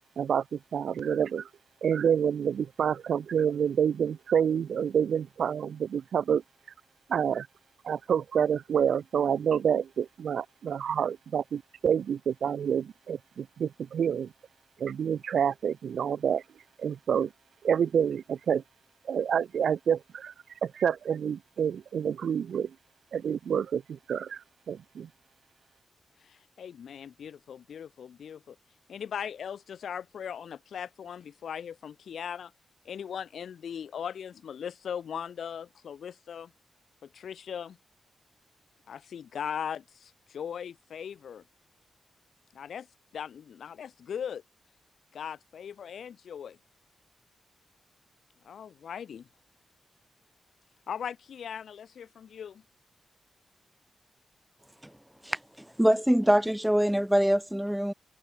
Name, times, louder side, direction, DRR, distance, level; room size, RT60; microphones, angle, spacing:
voice 1, 0.2-1.5 1.8-6.4 7.1-7.5 7.8-14.3 14.8-16.4 16.8-17.3 17.6-18.6 19.0-20.3 20.6-22.7 23.1-25.1, right 8 dB, 80° right, 1.4 m, -28 dB
voice 2, 26.2-28.6 28.9-32.5 32.8-36.5 37.0-37.8 38.9-41.4 42.5-42.9 43.1-44.4 45.1-46.6 48.4-49.3 50.9-52.6, left 8 dB, 80° left, 6.6 m, -39 dB
voice 3, 55.2-57.9, equal, 5° right, 4.8 m, -24 dB
cardioid pair, 90°, 0 cm